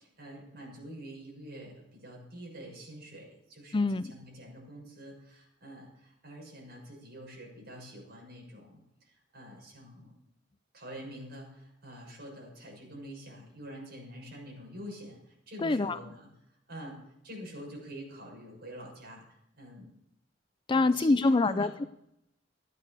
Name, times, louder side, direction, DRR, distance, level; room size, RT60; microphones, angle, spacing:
voice 1, 0.0-10.1 10.7-16.3 16.7-17.0 17.2-19.2 19.6-19.9 20.7-21.7, equal, 60° right, -2 dB, 6.7 m, -46 dB
voice 2, 3.7-4.1 15.6-16.0 20.7-21.8, left 3 dB, 25° left, 13 dB, 0.4 m, -25 dB
14.5 x 9.4 x 6.7 m, 0.79 s
head